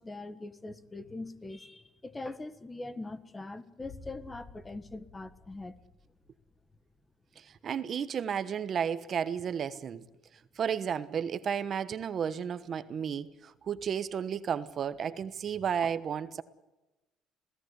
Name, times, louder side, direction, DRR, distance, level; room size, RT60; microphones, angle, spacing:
voice 1, 0.0-5.8, left 2 dB, 15° left, 1.5 m, -42 dB
sound 1, 3.8-6.8, left 3 dB, 30° left, 4.6 m, -53 dB
voice 2, 7.4-10.0 10.6-16.4, right 8 dB, 40° right, 1.1 m, -33 dB
27.5 x 17.5 x 8.2 m
cardioid pair, 130°, 0 cm